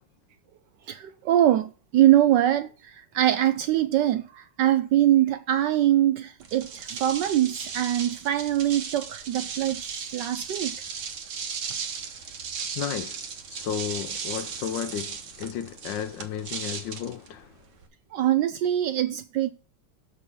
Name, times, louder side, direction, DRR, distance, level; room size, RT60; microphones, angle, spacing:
voice 1, 0.9-10.8 18.1-19.5, right 12 dB, 75° right, 1.0 m, -23 dB
sound 1, 6.4-17.9, right 6 dB, 60° right, 1.6 m, -36 dB
voice 2, 12.7-17.5, left 9 dB, 75° left, 1.2 m, -33 dB
6.3 x 5.3 x 6.7 m
omnidirectional pair, 2.3 m